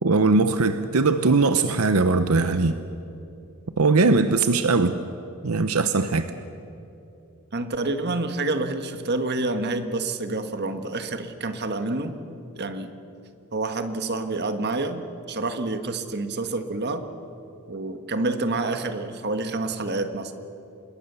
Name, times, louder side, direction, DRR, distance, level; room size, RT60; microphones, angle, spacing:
voice 1, 0.0-2.8 3.8-5.0 5.4-6.3, right 3 dB, 75° right, 11 dB, 0.8 m, -20 dB
voice 2, 7.5-12.2 12.5-12.9 13.5-17.1 17.7-20.3, right 2 dB, 50° right, 8 dB, 1.5 m, -28 dB
26.5 x 21.0 x 7.0 m, 2.8 s
head